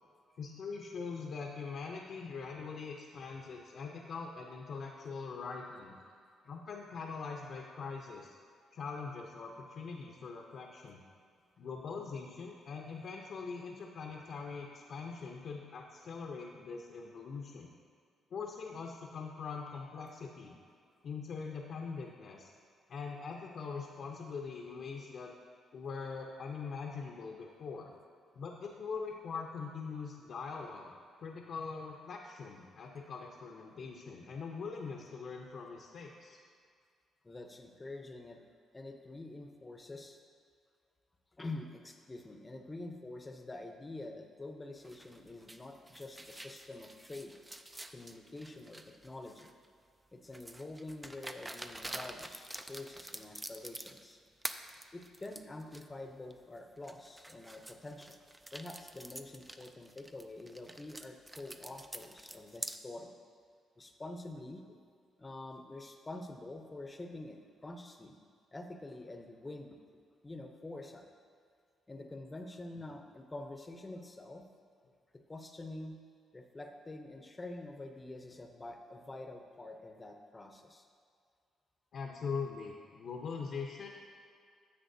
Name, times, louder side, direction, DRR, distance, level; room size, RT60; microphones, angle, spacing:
voice 1, 0.4-6.0 6.4-8.4 8.7-11.0 11.6-17.7 18.3-20.6 21.0-22.5 22.9-25.3 25.7-27.9 28.4-30.9 31.2-36.4 81.9-83.9, left 5 dB, 60° left, 0 dB, 0.7 m, -42 dB
voice 2, 37.2-38.4 38.7-40.2 41.4-47.3 47.9-49.5 50.1-54.2 54.9-58.2 58.5-63.1 63.8-64.6 65.2-68.2 68.5-69.8 70.2-71.1 71.9-74.4 75.1-76.0 76.3-80.9, left 2 dB, 20° left, 5 dB, 0.7 m, -46 dB
sound 1, 44.8-49.7 50.3-54.1 54.4-55.8 56.3-56.4 56.8-62.8, right 1 dB, 15° right, 0.4 m, -47 dB
10.0 x 7.4 x 2.7 m, 2.2 s
cardioid pair, 90°, 0 cm